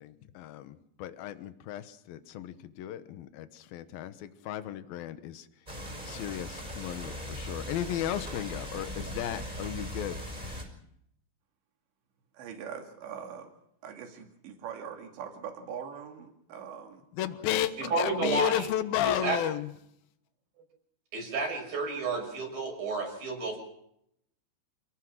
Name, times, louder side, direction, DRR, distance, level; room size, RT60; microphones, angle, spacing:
voice 1, 0.0-5.5 6.1-10.2 17.1-19.7, left 12 dB, 65° left, 2.7 m, -34 dB
sound 1, 5.7-10.6, equal, 10° right, 5.4 m, -39 dB
voice 2, 12.3-13.5 13.8-17.0 17.5-18.6, right 7 dB, 80° right, 4.7 m, -42 dB
voice 3, 17.9-18.7 19.0-19.4 21.1-23.6, right 3 dB, 55° right, 7.9 m, -31 dB
28.5 x 18.5 x 6.3 m
omnidirectional pair, 5.0 m